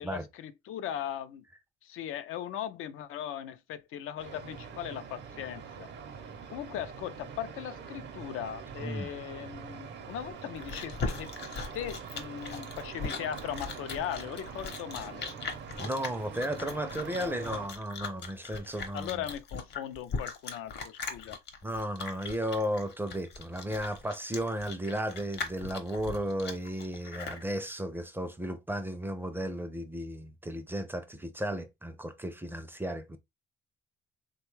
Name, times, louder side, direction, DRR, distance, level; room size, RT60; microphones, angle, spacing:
voice 1, 0.0-1.4 1.8-5.9 6.5-15.3 18.9-21.4, left 10 dB, 80° left, 0.5 m, -39 dB
sound 1, 4.2-17.7, right 6 dB, 55° right, 0.6 m, -44 dB
voice 2, 8.8-9.1 15.8-19.2 21.6-33.2, equal, 10° right, 0.4 m, -34 dB
Chewing mastication, 10.2-27.4, left 4 dB, 55° left, 0.8 m, -39 dB
3.3 x 2.2 x 3.1 m
cardioid pair, 115°, 21 cm